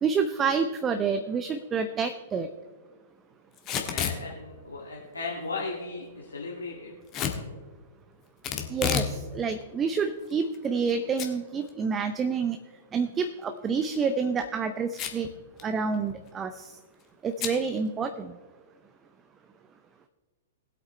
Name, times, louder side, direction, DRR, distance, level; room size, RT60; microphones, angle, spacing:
voice 1, 0.0-2.5 8.7-12.6 12.9-15.3 15.6-16.8 17.2-18.3, right 5 dB, 20° right, 8 dB, 0.6 m, -28 dB
Packing tape duct tape / Tearing, 3.6-4.2 7.1-7.4 8.4-9.1 9.5-9.6 10.3-10.9 11.2-11.3 11.7-11.8 13.7-14.0 14.9-15.3 15.6-15.7 15.9-16.3 17.4-17.6, left 8 dB, 30° left, 1.5 m, -30 dB
voice 2, 3.9-6.9, left 3 dB, 85° left, -3 dB, 1.8 m, -36 dB
20.0 x 8.2 x 3.3 m, 1.5 s
figure-of-eight pair, 110°, 0 cm